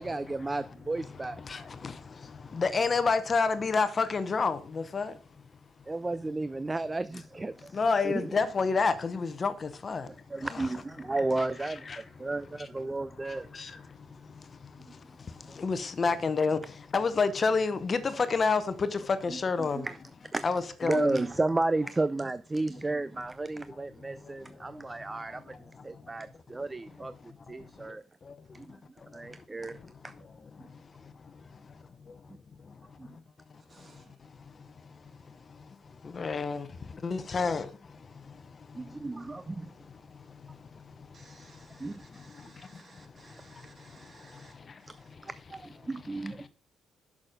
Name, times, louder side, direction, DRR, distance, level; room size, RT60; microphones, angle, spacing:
voice 1, 0.0-1.4 5.9-7.8 8.0-8.4 10.3-13.5 19.3-20.0 20.3-20.5 20.8-25.6 25.8-27.1 27.5-28.0 28.5-28.8 29.1-29.7 30.0-30.1 33.0-33.1 38.8-39.7 41.8-42.0 45.2-46.5, right 2 dB, 20° right, 0.4 m, -33 dB
voice 2, 2.6-4.6 4.9-5.1 7.8-9.5 9.8-10.0 10.5-10.6 15.6-16.6 16.9-18.6 19.2-19.8 20.4-21.2 36.2-36.6 37.0-37.6, left 4 dB, 40° left, 0.8 m, -27 dB
voice 3, 33.7-34.1 40.9-45.1, right 3 dB, 40° right, 2.1 m, -58 dB
6.5 x 6.1 x 5.0 m
cardioid pair, 90°, 0 cm